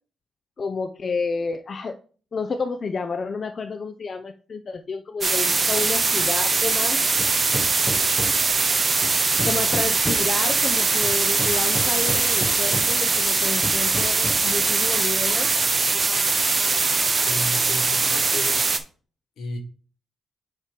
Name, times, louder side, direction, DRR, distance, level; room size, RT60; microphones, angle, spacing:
voice 1, 0.6-2.0 2.3-7.0 9.4-15.5, left 4 dB, 45° left, 0.5 m, -30 dB
sound 1, 5.2-18.8, right 4 dB, 35° right, 0.7 m, -21 dB
Hammer, 7.2-8.6 9.0-10.4 11.0-13.1 13.6-14.6, equal, 5° left, 0.7 m, -33 dB
voice 2, 17.2-18.6 19.4-19.6, left 2 dB, 75° left, 1.5 m, -34 dB
7.4 x 3.0 x 5.1 m
cardioid pair, 90°, 0 cm